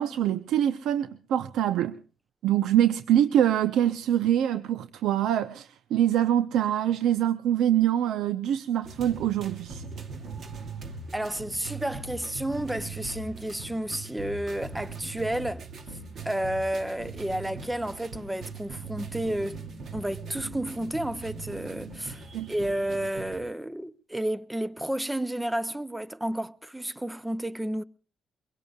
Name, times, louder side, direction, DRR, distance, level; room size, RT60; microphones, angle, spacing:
voice 1, 0.0-2.0 2.4-9.8 22.3-22.5, right 11 dB, 90° right, 0.7 m, -24 dB
sound 1, 8.8-23.4, right 4 dB, 50° right, 2.6 m, -40 dB
voice 2, 11.1-15.7 16.2-19.6 19.9-27.8, right 1 dB, 5° right, 0.7 m, -31 dB
23.5 x 22.5 x 2.4 m
cardioid pair, 140°, 0 cm